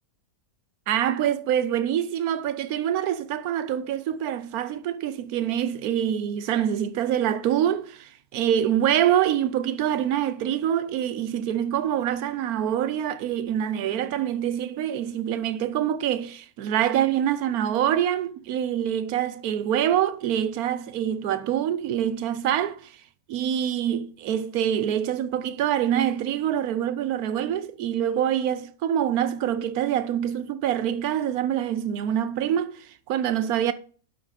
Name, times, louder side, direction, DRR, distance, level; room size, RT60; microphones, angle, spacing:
voice 1, 0.9-23.0 23.3-33.7, right 10 dB, 80° right, 1.1 m, -25 dB
12.0 x 5.0 x 5.0 m
omnidirectional pair, 1.5 m